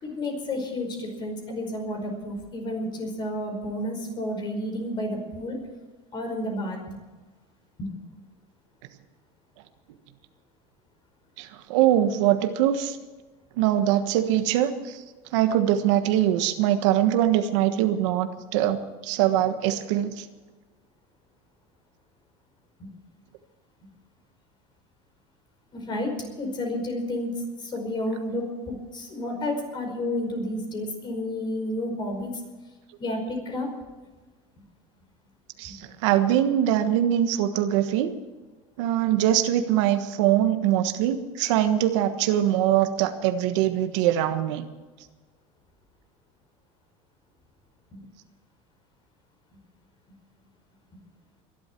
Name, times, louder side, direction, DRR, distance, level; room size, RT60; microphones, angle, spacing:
voice 1, 0.0-5.6 6.1-6.9 7.8-7.9 22.8-22.9 25.7-32.4 33.0-33.7 35.7-35.8 47.9-48.0, left 1 dB, 30° left, 4 dB, 5.1 m, -31 dB
voice 2, 11.4-13.0 13.6-15.0 15.3-20.3 35.6-38.1 38.8-44.6, right 11 dB, 80° right, 9 dB, 1.4 m, -23 dB
22.0 x 12.0 x 4.6 m, 1.3 s
cardioid pair, 145°, 15 cm